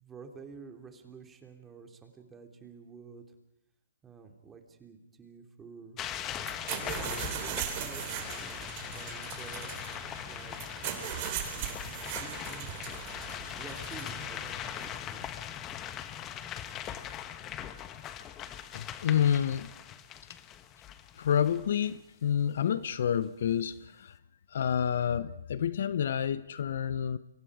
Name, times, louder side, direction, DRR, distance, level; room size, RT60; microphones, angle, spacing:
voice 1, 0.0-3.2 4.0-6.0 6.8-9.8 10.3-10.8 11.5-12.8 13.5-15.6, right 5 dB, 15° right, 5 dB, 3.0 m, -50 dB
sound 1, 6.0-21.9, left 10 dB, 20° left, 1.3 m, -40 dB
sound 2, 6.4-15.0, right 11 dB, 35° right, 3.2 m, -39 dB
voice 2, 18.7-19.7 21.2-24.1 24.5-27.2, left 9 dB, 60° left, 16 dB, 0.9 m, -29 dB
29.5 x 24.0 x 5.0 m, 0.81 s
hypercardioid pair, 145°, 0 cm